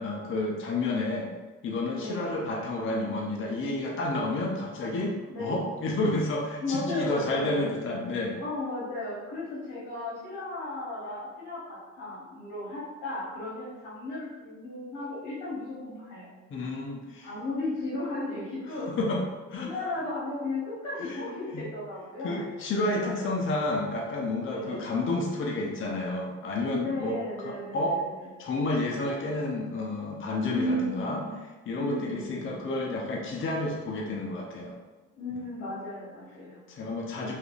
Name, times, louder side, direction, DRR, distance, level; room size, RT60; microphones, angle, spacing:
voice 1, 0.0-1.3 1.6-5.1 5.4-8.4 16.5-17.3 19.0-19.2 19.5-19.7 21.0-21.2 21.5-21.6 22.2-27.2 27.4-28.0 28.4-31.2 31.7-34.8 36.7-37.3, left 2 dB, 40° left, -1 dB, 0.5 m, -30 dB
voice 2, 2.0-2.4 5.3-5.6 6.6-7.7 8.4-16.3 17.2-18.9 19.6-22.4 23.0-23.4 24.4-24.9 26.8-28.3 30.5-31.3 31.8-32.6 35.2-36.6, left 1 dB, 80° left, -7 dB, 1.0 m, -35 dB
3.3 x 2.4 x 2.4 m, 1.2 s
cardioid pair, 90°, 30 cm